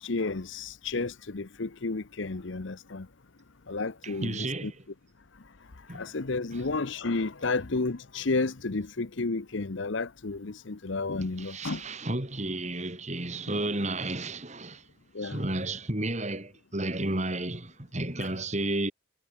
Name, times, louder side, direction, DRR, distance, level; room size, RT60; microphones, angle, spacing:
voice 1, 0.0-3.1 3.7-4.7 5.9-11.8 15.1-15.4 18.2-18.3, left 3 dB, 60° left, 0.9 m, -32 dB
voice 2, 4.0-4.7 5.9-6.0 11.4-14.8 15.2-18.9, right 2 dB, 35° right, 3.0 m, -32 dB
head